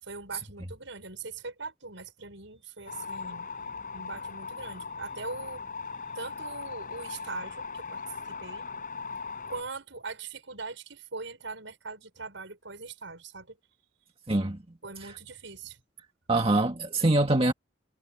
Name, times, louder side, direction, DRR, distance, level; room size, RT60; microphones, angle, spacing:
voice 1, 0.0-3.5 3.9-5.6 6.1-8.0 8.3-8.7 9.5-13.6 14.8-15.8, right 4 dB, 75° right, 6.0 m, -41 dB
sound 1, 2.9-9.6, left 4 dB, 45° left, 5.8 m, -39 dB
voice 2, 14.3-14.6 16.3-17.5, right 2 dB, 30° right, 1.9 m, -24 dB
head